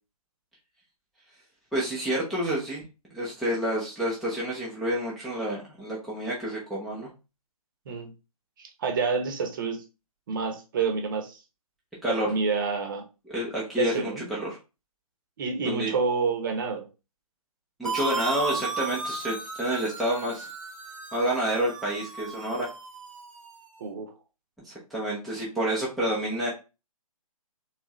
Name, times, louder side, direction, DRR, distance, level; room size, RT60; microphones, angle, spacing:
voice 1, 1.7-2.9 3.1-7.1 12.0-12.3 13.3-14.6 15.6-15.9 17.8-20.5 21.1-22.7 24.6-26.5, right 1 dB, ahead, -7 dB, 0.6 m, -29 dB
voice 2, 8.6-9.8 10.3-11.4 12.1-13.0 13.7-14.3 15.4-16.9 23.8-24.1, right 4 dB, 35° right, 4 dB, 0.9 m, -28 dB
sound 1, 17.9-23.6, right 4 dB, 60° right, 1.0 m, -35 dB
3.4 x 3.4 x 3.0 m, 0.29 s
figure-of-eight pair, 135°, 19 cm